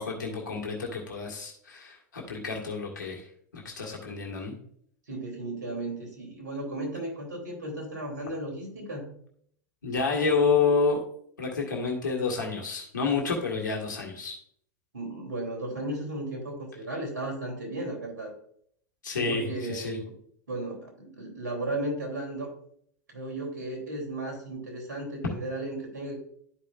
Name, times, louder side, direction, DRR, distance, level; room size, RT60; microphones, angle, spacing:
voice 1, 0.0-3.2 3.5-4.5 9.8-11.0 11.4-14.4 19.0-20.0, left 4 dB, 80° left, -1 dB, 1.9 m, -29 dB
voice 2, 5.1-9.0 14.9-18.3 19.1-20.1 20.5-22.5 23.1-26.2, right 1 dB, 80° right, 2 dB, 3.3 m, -35 dB
12.5 x 5.4 x 2.5 m, 0.64 s
figure-of-eight pair, 90°, 10 cm